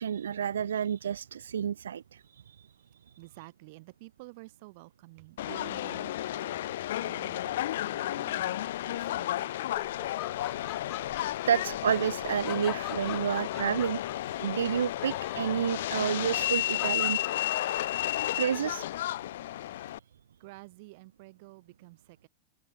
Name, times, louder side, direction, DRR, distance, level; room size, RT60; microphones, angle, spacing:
voice 1, 0.0-2.7 3.1-3.2 10.8-10.9 11.5-14.0 14.4-17.2 18.3-18.9, right 8 dB, 65° right, 0.4 m, -30 dB
voice 2, 3.2-10.0 20.4-22.3, right 24 dB, 50° right, 2.6 m, -51 dB
Subway metro underground, 5.4-20.0, left 13 dB, 55° left, 0.9 m, -32 dB
Laughter, 9.0-19.0, left 18 dB, 40° left, 1.1 m, -44 dB
open air
figure-of-eight pair, 90°, 0 cm